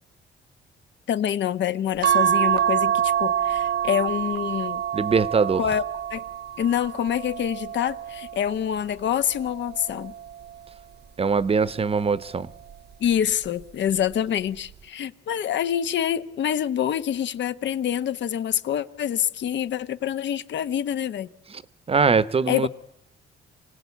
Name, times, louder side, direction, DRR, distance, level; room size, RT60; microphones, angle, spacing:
voice 1, 1.1-4.8 5.6-5.8 6.1-6.2 6.6-10.1 13.0-21.3 22.5-22.7, left 9 dB, 65° left, 1.1 m, -26 dB
sound 1, 2.0-8.6 9.3-10.7 11.9-12.4 12.7-12.8, right 10 dB, 55° right, 1.0 m, -26 dB
voice 2, 4.9-5.6 11.2-12.5 21.9-22.7, right 5 dB, 30° right, 0.9 m, -22 dB
27.0 x 18.0 x 8.4 m
cardioid pair, 95°, 20 cm